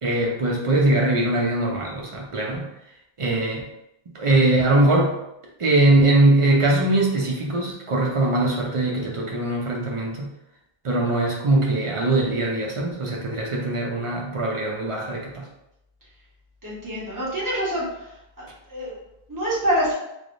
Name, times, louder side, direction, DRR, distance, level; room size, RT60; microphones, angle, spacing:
voice 1, 0.0-2.7 3.2-3.6 4.1-5.1 5.6-10.3 10.8-15.5, right 2 dB, 45° right, -1 dB, 0.5 m, -21 dB
voice 2, 16.6-17.8 18.7-19.0 19.3-19.9, equal, 20° right, -7 dB, 0.9 m, -25 dB
3.3 x 2.1 x 2.5 m, 0.85 s
omnidirectional pair, 1.0 m